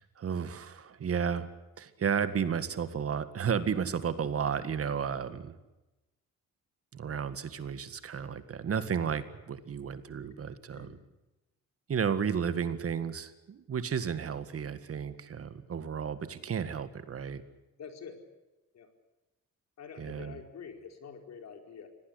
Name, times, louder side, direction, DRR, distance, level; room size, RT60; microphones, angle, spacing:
voice 1, 0.0-5.5 6.9-11.0 11.9-17.4 20.0-20.4, right 7 dB, 50° right, 12 dB, 1.9 m, -33 dB
voice 2, 17.8-18.2 18.7-18.9 19.8-21.9, left 6 dB, 60° left, 6 dB, 4.5 m, -47 dB
24.5 x 18.5 x 8.3 m, 1.0 s
cardioid pair, 90°, 30 cm